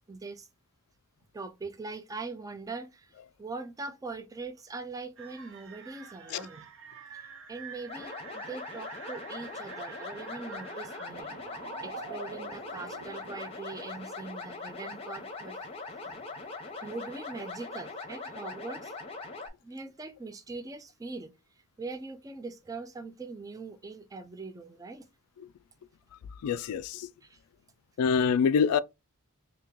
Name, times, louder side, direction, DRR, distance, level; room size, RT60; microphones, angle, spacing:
voice 1, 0.1-0.5 1.3-6.6 7.1-11.3 11.8-15.6 15.9-16.2 16.8-18.9 19.6-21.3 21.8-25.1 26.2-26.3 27.2-27.4, right 3 dB, 15° right, 0.3 m, -42 dB
sound 1, 5.2-13.5, right 5 dB, 55° right, 0.6 m, -46 dB
sound 2, 7.9-19.5, left 3 dB, 25° left, 0.7 m, -41 dB
voice 2, 26.4-27.1 28.0-28.8, left 6 dB, 80° left, 0.3 m, -25 dB
2.9 x 2.8 x 3.6 m
head